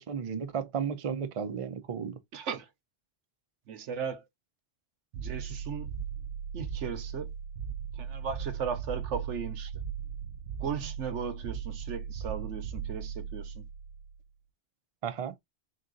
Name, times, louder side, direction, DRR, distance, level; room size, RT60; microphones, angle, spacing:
voice 1, 0.0-2.2 15.0-15.3, right 7 dB, 35° right, 0.6 m, -34 dB
voice 2, 2.3-2.7 3.7-4.2 5.1-6.0 6.5-7.3 8.0-9.7 10.6-13.6, right 6 dB, 85° right, 1.2 m, -37 dB
sound 1, 5.1-14.2, right 8 dB, 70° right, 0.9 m, -38 dB
3.9 x 2.7 x 3.8 m
omnidirectional pair, 1.2 m